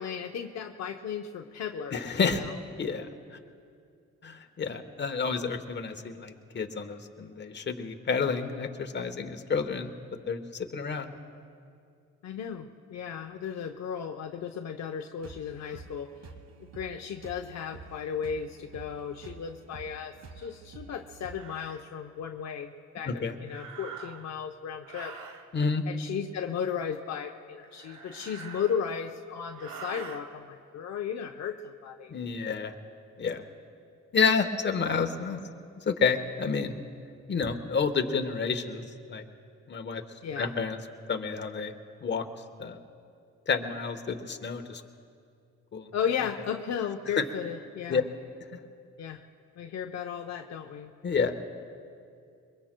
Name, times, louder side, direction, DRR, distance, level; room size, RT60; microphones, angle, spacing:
voice 1, 0.0-2.5 12.2-16.1 16.6-25.2 25.9-32.1 40.2-40.5 45.9-48.0 49.0-49.2 49.6-50.9, left 7 dB, 60° left, 3 dB, 0.7 m, -35 dB
voice 2, 1.9-3.4 4.2-9.9 10.3-11.1 23.0-23.3 25.5-25.8 32.1-32.7 33.2-33.4 34.1-35.4 35.9-36.8 37.3-38.8 39.1-39.2 39.7-40.0 40.4-40.8 41.1-41.7 42.0-42.3 42.6-42.8 43.5-44.8 45.7-45.9 47.2-47.3 47.9-48.0 51.0-51.4, left 5 dB, 35° left, 6 dB, 1.1 m, -29 dB
sound 1, 15.2-21.4, right 4 dB, 60° right, 1.4 m, -49 dB
sound 2, 20.4-20.5 21.3-21.8 23.4-24.4 24.8-25.5 27.6-29.1 29.5-30.2, right 6 dB, 85° right, 1.2 m, -45 dB
22.5 x 22.5 x 2.2 m, 2.3 s
cardioid pair, 90°, 30 cm